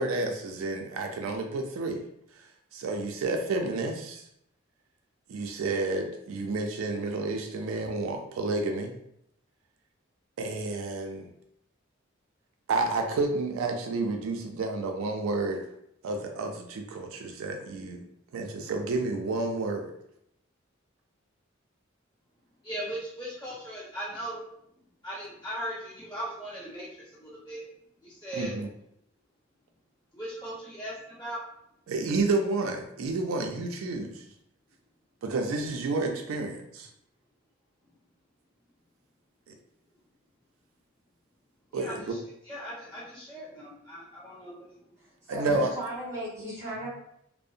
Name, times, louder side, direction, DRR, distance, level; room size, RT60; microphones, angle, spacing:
voice 1, 0.0-2.0 2.3-2.4 2.7-4.2 5.3-9.0 10.4-11.3 12.7-15.6 16.0-18.0 18.3-19.9 28.3-28.7 31.9-34.2 35.2-36.9 39.5-39.6 41.7-42.2 45.3-45.7, right 3 dB, 80° right, 3 dB, 0.4 m, -30 dB
voice 2, 22.6-24.4 25.0-27.6 28.0-28.6 30.1-31.4 41.7-42.2 42.4-44.9 45.5-45.6, equal, 20° left, -10 dB, 1.3 m, -38 dB
voice 3, 45.0-46.9, right 1 dB, 15° right, -8 dB, 1.3 m, -37 dB
2.6 x 2.0 x 2.4 m, 0.75 s
head